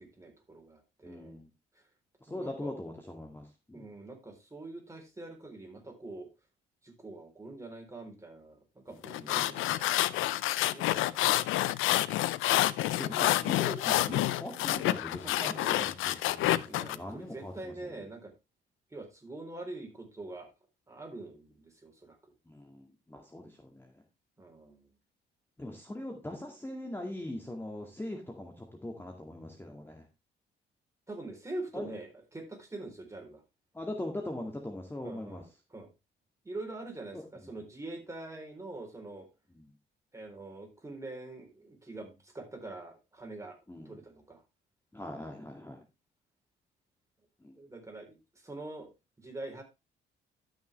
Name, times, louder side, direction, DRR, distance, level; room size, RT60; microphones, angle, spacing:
voice 1, 0.0-1.4 1.7-1.9 2.3-2.7 3.7-6.3 6.8-11.6 15.2-16.0 16.7-18.3 18.9-20.5 20.9-22.3 24.4-24.9 31.1-33.4 35.0-35.4 35.7-35.9 36.4-39.3 40.1-43.6 43.9-44.4 47.5-49.6, right 2 dB, 15° right, 3 dB, 4.0 m, -45 dB
voice 2, 1.0-1.5 2.2-3.9 9.1-9.5 13.0-18.0 22.5-24.0 25.6-30.1 31.7-31.9 33.7-35.4 37.1-37.6 39.5-39.6 43.7-44.0 44.9-45.8 47.4-47.5, left 1 dB, 10° left, 2 dB, 2.0 m, -41 dB
sound 1, 9.0-17.0, left 15 dB, 90° left, 0.5 m, -28 dB
12.5 x 6.3 x 3.4 m, 0.25 s
cardioid pair, 90°, 20 cm